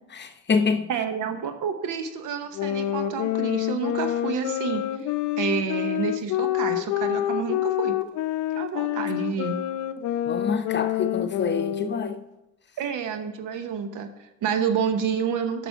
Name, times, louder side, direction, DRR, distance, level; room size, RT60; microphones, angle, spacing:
voice 1, 0.0-0.9 10.3-12.2, left 5 dB, 35° left, 0.8 m, -26 dB
voice 2, 0.9-5.1 5.4-7.9 8.5-9.6 12.8-15.7, right 7 dB, 90° right, 1.0 m, -29 dB
sound 1, 2.5-12.2, left 13 dB, 75° left, 0.5 m, -27 dB
8.2 x 6.1 x 4.6 m
cardioid pair, 90°, 30 cm